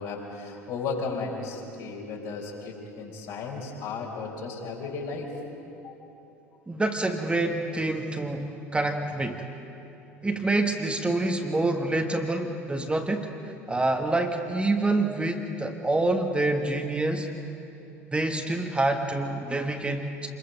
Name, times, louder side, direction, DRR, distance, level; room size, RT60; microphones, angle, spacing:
voice 1, 0.0-5.3 5.7-5.9 19.2-19.4, left 4 dB, 60° left, -1 dB, 4.6 m, -35 dB
voice 2, 6.7-9.5 10.2-13.3 13.7-17.3 18.1-20.3, right 2 dB, 15° right, 4 dB, 1.6 m, -27 dB
27.0 x 22.0 x 5.2 m, 2.8 s
figure-of-eight pair, 65°, 8 cm